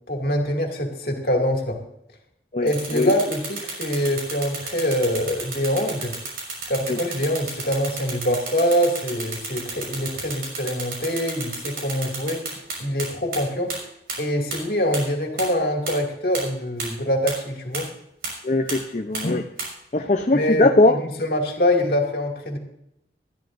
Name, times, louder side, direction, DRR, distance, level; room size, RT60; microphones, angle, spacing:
voice 1, 0.1-1.8 2.6-6.1 6.7-13.7 14.2-17.9 20.3-22.6, equal, 55° left, 2 dB, 2.3 m, -24 dB
voice 2, 2.5-3.1 6.9-7.0 18.4-19.4 19.9-21.0, left 2 dB, 40° left, 4 dB, 0.6 m, -20 dB
sound 1, 2.7-13.0 13.3-13.4 13.7-13.8 14.1-14.2 14.5-14.6 14.9-15.0 15.4-15.5 15.9-16.0 16.3-16.4 16.8-16.9 17.3-17.4 17.7-17.8 18.2-18.3 18.7-18.8 19.1-19.2 19.6-19.7, right 4 dB, 55° right, 5.7 m, -31 dB
20.0 x 13.0 x 2.6 m, 0.81 s
head